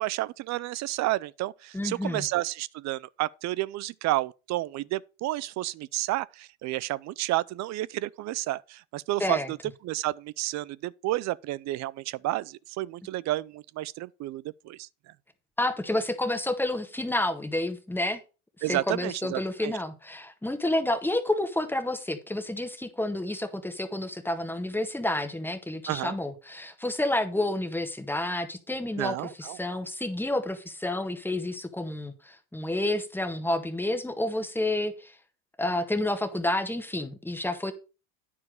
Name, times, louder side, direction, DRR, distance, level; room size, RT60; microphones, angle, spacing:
voice 1, 0.0-9.6 9.8-14.9 18.6-19.7 25.9-26.1 29.0-29.6, right 17 dB, 45° right, 0.5 m, -31 dB
voice 2, 1.7-2.3 9.2-9.5 15.6-18.2 18.7-35.2 35.6-37.7, left 1 dB, 5° left, 1.6 m, -29 dB
9.8 x 4.6 x 6.4 m
supercardioid pair, 95°, 41 cm